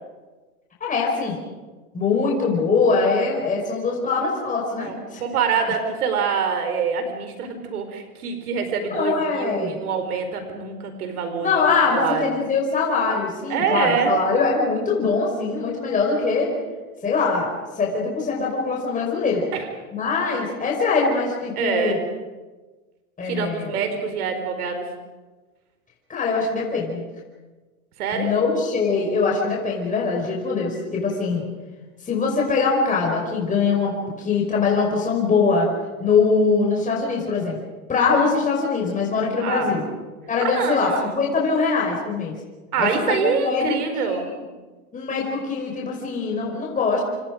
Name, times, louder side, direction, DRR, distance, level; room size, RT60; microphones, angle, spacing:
voice 1, 0.8-1.4 1.9-5.2 8.9-9.8 11.4-16.5 17.0-17.5 17.8-19.4 19.9-22.0 23.2-23.7 26.1-27.0 28.1-31.4 32.0-35.7 36.0-37.6 37.9-39.8 40.3-42.3 42.8-43.7 44.1-44.2 44.9-47.0, left 4 dB, 15° left, -2 dB, 5.5 m, -22 dB
voice 2, 4.8-12.4 13.5-14.2 19.5-19.7 21.6-22.0 23.2-24.9 28.0-28.3 38.1-38.3 39.4-39.8 40.4-41.2 42.7-44.3, right 6 dB, 85° right, 6 dB, 4.6 m, -25 dB
28.5 x 27.0 x 5.2 m, 1.3 s
supercardioid pair, 130°, 43 cm